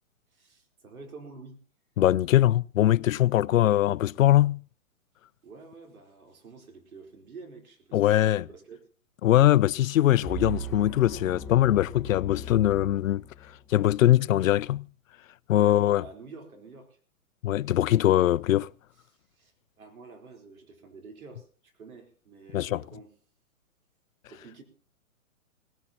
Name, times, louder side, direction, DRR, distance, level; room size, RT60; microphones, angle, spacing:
voice 1, 0.3-1.6 5.4-8.9 15.5-17.0 19.1-23.1 24.3-24.6, right 4 dB, 80° right, 4.2 m, -48 dB
voice 2, 2.0-4.6 7.9-8.4 9.2-13.2 13.7-14.9 15.5-16.0 17.4-18.7 22.5-22.8, left 13 dB, 70° left, 0.6 m, -22 dB
sound 1, 10.2-13.7, equal, 5° left, 2.2 m, -38 dB
19.0 x 17.5 x 2.9 m
hypercardioid pair, 135°, 41 cm